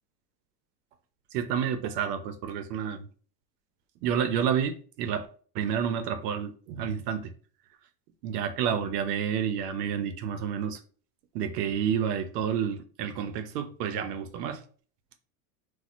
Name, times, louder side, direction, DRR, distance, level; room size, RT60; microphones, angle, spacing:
voice 1, 1.3-3.1 4.0-5.3 5.5-7.3 8.2-10.8 11.3-14.6, right 8 dB, 90° right, 0.6 m, -29 dB
4.2 x 2.2 x 2.5 m
supercardioid pair, 115°, 46 cm